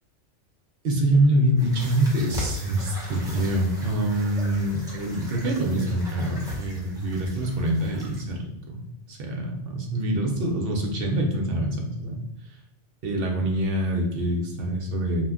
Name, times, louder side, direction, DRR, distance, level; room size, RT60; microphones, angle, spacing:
voice 1, 0.8-8.8 9.1-12.2 13.0-15.3, right 1 dB, 60° right, 1 dB, 0.7 m, -25 dB
sound 1, 1.6-8.2, left 1 dB, 5° right, 0.5 m, -39 dB
2.3 x 2.1 x 3.6 m, 0.84 s
omnidirectional pair, 1.3 m